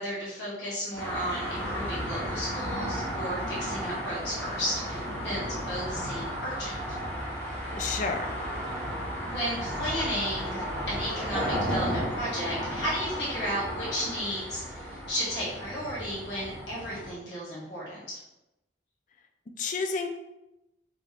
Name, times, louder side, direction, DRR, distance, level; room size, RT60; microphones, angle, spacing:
voice 1, 0.0-7.0 7.7-7.8 9.2-18.0, equal, 65° left, -8 dB, 1.4 m, -34 dB
sound 1, 0.9-17.1, equal, 10° left, 1.1 m, -34 dB
voice 2, 7.8-8.3 19.6-20.1, left 4 dB, 40° left, 5 dB, 0.3 m, -30 dB
3.0 x 2.9 x 3.9 m, 0.94 s
head